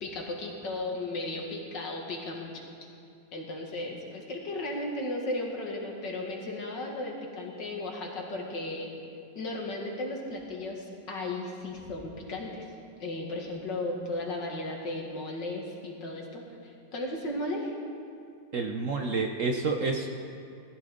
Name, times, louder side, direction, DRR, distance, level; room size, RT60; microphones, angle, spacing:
voice 1, 0.0-2.9 3.3-8.9 9.4-12.7 13.0-17.7, left 2 dB, 70° left, -1 dB, 2.5 m, -35 dB
voice 2, 18.5-20.1, right 4 dB, 55° right, 3 dB, 1.0 m, -29 dB
19.5 x 14.0 x 3.9 m, 2.4 s
omnidirectional pair, 2.0 m